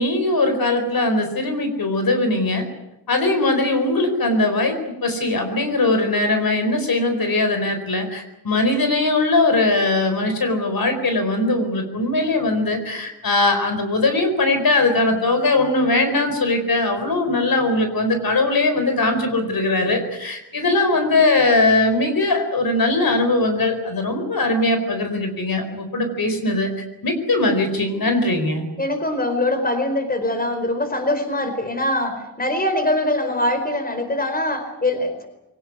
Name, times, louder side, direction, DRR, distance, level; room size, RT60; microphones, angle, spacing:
voice 1, 0.0-2.6 3.1-26.7 27.0-28.7, left 2 dB, 60° left, 7 dB, 4.5 m, -20 dB
voice 2, 28.8-35.3, left 1 dB, 20° left, 8 dB, 4.5 m, -23 dB
23.0 x 18.5 x 9.6 m, 0.89 s
wide cardioid pair, 100°, 40 cm